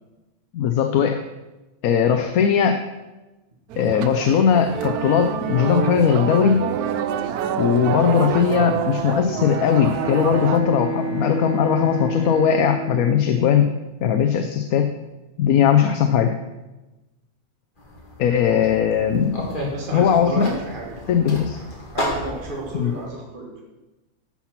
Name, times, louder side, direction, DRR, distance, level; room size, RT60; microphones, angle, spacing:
voice 1, 0.5-1.2 1.8-2.8 3.8-6.7 7.6-13.7 14.0-14.9 15.4-16.3 18.2-19.4 19.9-20.5 21.1-21.6 22.7-22.9, left 8 dB, 75° left, 7 dB, 1.1 m, -19 dB
sound 1, 3.7-10.6, right 8 dB, 90° right, 1.2 m, -27 dB
Bowed string instrument, 9.3-14.1, right 2 dB, 75° right, 3.9 m, -30 dB
sound 2, 17.8-23.1, left 1 dB, 35° left, 2.2 m, -33 dB
voice 2, 19.7-20.9 21.2-21.5 21.9-23.6, right 2 dB, 35° right, -1 dB, 1.8 m, -32 dB
12.0 x 5.7 x 5.9 m, 1.1 s
omnidirectional pair, 1.6 m